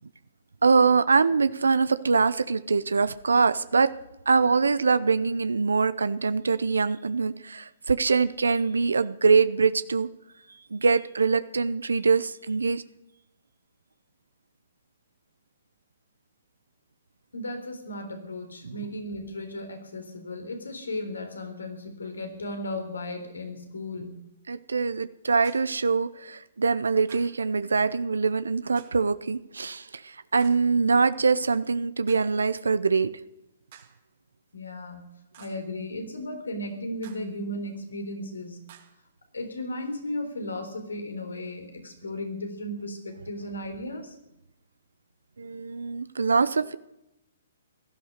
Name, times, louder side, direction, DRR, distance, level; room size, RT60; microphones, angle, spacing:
voice 1, 0.6-3.9 4.3-10.1 10.7-12.8 18.6-18.7 24.5-33.1 45.4-46.8, right 4 dB, 85° right, 15 dB, 0.6 m, -23 dB
voice 2, 17.3-24.2 34.5-35.1 35.4-38.6 39.3-44.2, left 1 dB, 90° left, 6 dB, 3.8 m, -35 dB
sound 1, 25.4-25.8 27.1-27.5 28.8-29.1 30.4-30.8 32.1-32.4 33.7-34.1 35.3-35.7 37.0-37.4 38.7-39.0, right 10 dB, 50° right, 3.0 m, -52 dB
17.0 x 12.5 x 6.6 m, 0.89 s
hypercardioid pair, 135°, 0 cm